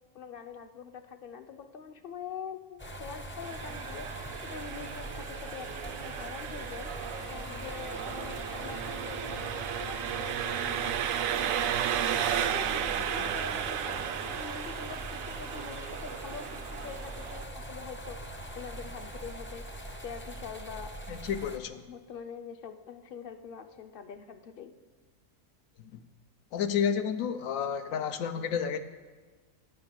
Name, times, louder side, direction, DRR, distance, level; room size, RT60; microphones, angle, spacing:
voice 1, 0.1-4.2 4.4-7.0 7.3-11.0 11.4-11.7 12.3-18.3 18.6-19.7 20.0-21.0 21.9-24.7, left 7 dB, 50° left, 8 dB, 0.7 m, -44 dB
sound 1, 2.8-21.6, right 1 dB, 15° left, 0.5 m, -42 dB
Engine, 3.4-17.4, right 9 dB, 85° right, 1.0 m, -34 dB
voice 2, 21.1-21.8 25.8-26.0 26.5-28.8, left 7 dB, 90° left, 10 dB, 1.1 m, -31 dB
9.8 x 6.0 x 7.3 m, 1.4 s
omnidirectional pair, 1.4 m